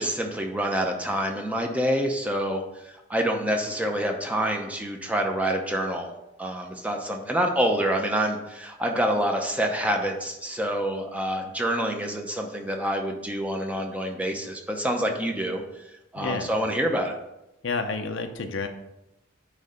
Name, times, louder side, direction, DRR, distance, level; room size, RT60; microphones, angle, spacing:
voice 1, 0.0-17.1, equal, 5° right, 2 dB, 0.7 m, -27 dB
voice 2, 16.2-16.5 17.6-18.7, left 4 dB, 70° left, 6 dB, 0.7 m, -29 dB
9.6 x 3.2 x 5.2 m, 0.91 s
head